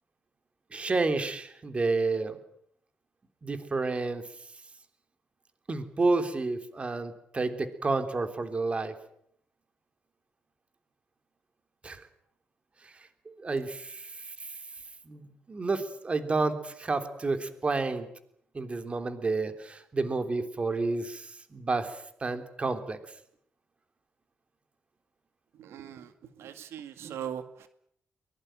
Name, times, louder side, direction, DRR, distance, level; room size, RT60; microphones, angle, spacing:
voice 1, 0.7-2.4 3.4-4.2 5.7-8.9 11.8-12.0 12.8-12.9 13.2-14.5 15.0-18.1 18.5-23.0, right 3 dB, 30° right, 9 dB, 3.3 m, -30 dB
voice 2, 25.6-26.1 26.4-27.7, right 9 dB, 85° right, 10 dB, 2.1 m, -40 dB
23.5 x 21.0 x 9.2 m, 0.69 s
cardioid pair, 115°, 4 cm